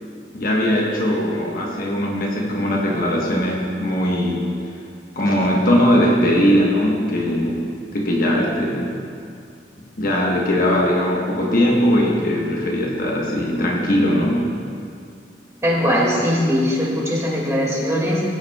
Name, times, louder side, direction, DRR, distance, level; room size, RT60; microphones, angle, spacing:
voice 1, 0.3-4.5 5.2-8.9 10.0-14.5, equal, 55° left, -2 dB, 1.2 m, -20 dB
voice 2, 15.6-18.2, equal, 15° right, -4 dB, 2.1 m, -20 dB
16.0 x 8.9 x 2.3 m, 2.4 s
head